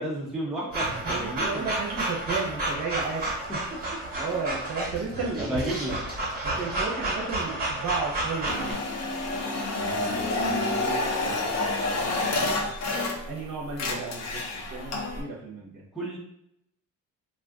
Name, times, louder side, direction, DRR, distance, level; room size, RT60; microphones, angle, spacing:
voice 1, 0.0-1.7 3.5-3.6 5.4-6.0 9.7-12.2 15.9-16.2, right 1 dB, ahead, -4 dB, 0.4 m, -34 dB
sound 1, 0.7-8.7, right 2 dB, 25° right, 1.3 m, -31 dB
voice 2, 1.0-3.3 4.1-5.7 6.6-8.8 12.3-12.7 13.3-15.8, right 4 dB, 55° right, -2 dB, 0.8 m, -33 dB
sound 2, 8.5-13.4 13.7-15.2, left 2 dB, 50° left, 0.6 m, -28 dB
2.5 x 2.4 x 3.5 m, 0.77 s
cardioid pair, 165°, 35 cm